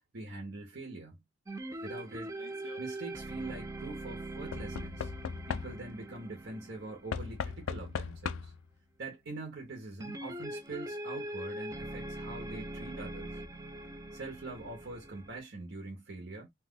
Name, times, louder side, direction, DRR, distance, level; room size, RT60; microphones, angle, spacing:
voice 1, 0.1-1.2 1.8-2.3 2.8-5.1 5.4-8.5 9.0-13.4 14.1-16.5, right 2 dB, 55° right, 1.0 m, -44 dB
sound 1, 1.5-8.0 10.0-15.4, right 1 dB, 15° right, 0.4 m, -42 dB
Knock / Wood, 2.3-2.8 4.5-6.1 7.1-8.7 9.7-9.8 10.1-10.2, left 6 dB, 70° left, 0.4 m, -38 dB
3.0 x 2.3 x 3.6 m
head